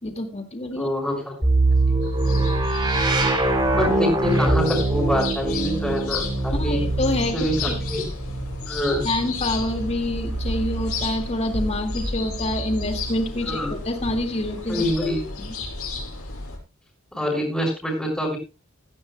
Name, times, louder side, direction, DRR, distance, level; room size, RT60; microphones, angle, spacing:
voice 1, 0.0-0.9 3.6-3.8 6.5-7.8 9.0-15.1 15.4-15.5, left 1 dB, 30° left, 5 dB, 2.1 m, -27 dB
voice 2, 0.8-1.4 2.3-2.5 3.7-6.8 7.3-8.0 8.7-9.0 13.4-13.7 14.7-15.3 17.1-18.4, left 1 dB, 5° left, -6 dB, 4.5 m, -25 dB
sound 1, 1.4-11.2 12.2-13.3, right 2 dB, 20° right, 3.0 m, -24 dB
sound 2, 2.0-16.6, left 3 dB, 90° left, 6.1 m, -33 dB
17.0 x 14.5 x 2.3 m, 0.26 s
head